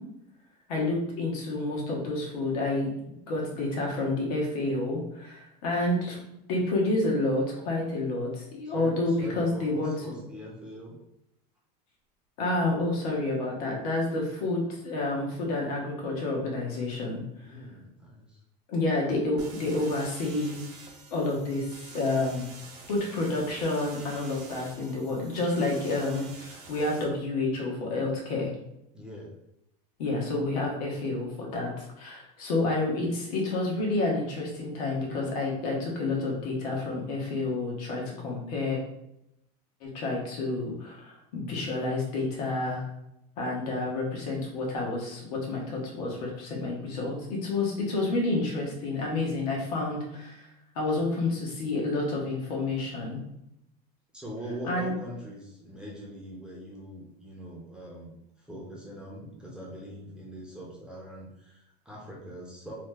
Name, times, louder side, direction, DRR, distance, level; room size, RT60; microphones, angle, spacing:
voice 1, 0.7-6.2 6.5-10.2 12.4-17.2 18.7-20.6 21.1-22.5 22.9-28.5 30.0-38.8 39.8-42.9 43.4-50.5 50.7-53.2 54.6-54.9, left 2 dB, 75° left, -2 dB, 1.1 m, -29 dB
voice 2, 8.7-11.0 17.4-18.4 28.9-29.3 54.1-58.2 58.5-62.7, equal, 5° right, -4 dB, 0.6 m, -42 dB
sound 1, 19.4-27.0, right 3 dB, 55° right, 0.9 m, -47 dB
3.0 x 2.0 x 3.3 m, 0.82 s
supercardioid pair, 150°, 20 cm